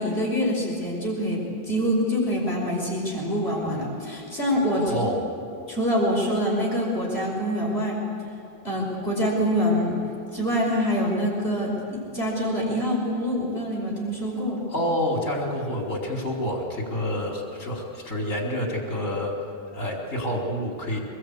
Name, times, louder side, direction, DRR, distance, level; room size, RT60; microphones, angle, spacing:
voice 1, 0.0-5.1 5.7-8.0 8.6-10.0 10.3-14.6, equal, 40° left, -3 dB, 5.8 m, -25 dB
voice 2, 4.8-5.2 14.7-19.3 19.7-21.0, equal, 60° left, -1 dB, 4.7 m, -28 dB
24.5 x 21.5 x 8.4 m, 2.8 s
omnidirectional pair, 1.6 m